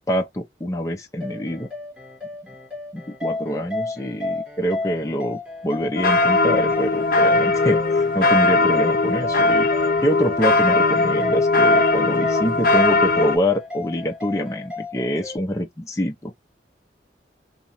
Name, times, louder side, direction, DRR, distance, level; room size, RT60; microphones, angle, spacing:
voice 1, 0.1-1.7 2.9-9.7 10.0-16.3, equal, 20° left, 0.6 m, -25 dB
sound 1, 1.2-15.4, left 2 dB, 5° right, 1.1 m, -33 dB
sound 2, 6.0-13.4, left 3 dB, 55° left, 0.6 m, -19 dB
2.9 x 2.3 x 3.9 m
head